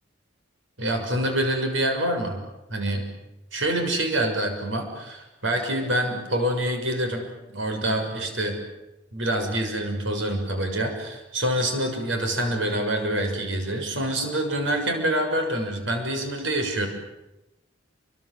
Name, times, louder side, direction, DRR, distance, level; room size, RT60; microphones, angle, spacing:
voice 1, 0.8-2.4 2.7-3.1 3.5-7.2 7.5-8.6 9.1-16.9, right 1 dB, 80° right, 4 dB, 6.7 m, -26 dB
29.0 x 25.0 x 7.8 m, 0.96 s
head